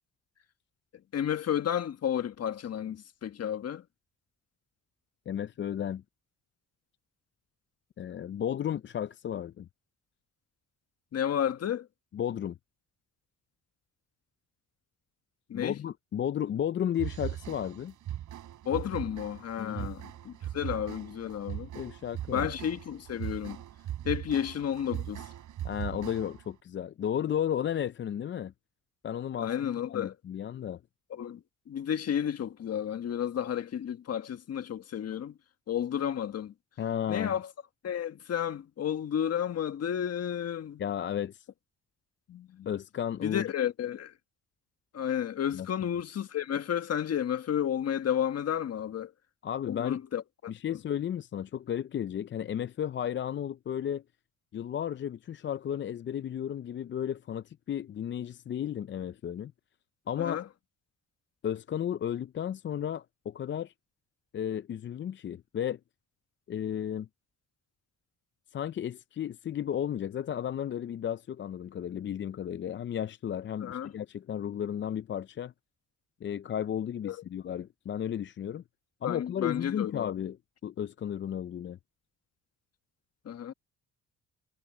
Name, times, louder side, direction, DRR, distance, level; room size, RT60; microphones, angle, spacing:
voice 1, 1.1-3.8 11.1-11.9 15.5-15.8 18.6-21.7 22.3-23.6 24.0-25.3 29.4-30.1 31.1-35.4 35.7-36.5 37.1-37.5 37.8-40.8 42.3-42.7 43.2-44.1 44.9-49.1 49.7-50.8 60.2-60.4 73.6-73.9 77.0-77.2 79.0-80.1 83.2-83.5, left 9 dB, 55° left, 1.5 m, -32 dB
voice 2, 5.3-6.0 8.0-9.7 12.1-12.6 15.5-17.9 19.6-19.9 21.7-22.5 25.6-28.5 29.0-30.8 36.8-37.4 40.8-41.5 42.7-43.5 45.5-45.7 49.4-50.0 50.5-54.0 54.5-59.5 60.1-60.4 61.4-63.7 64.3-65.8 66.5-67.1 68.5-75.5 76.2-78.6 79.0-80.4 80.6-81.8, left 9 dB, 40° left, 0.5 m, -33 dB
sound 1, 16.9-26.5, right 12 dB, 75° right, 4.2 m, -39 dB
cardioid pair, 90°, 30 cm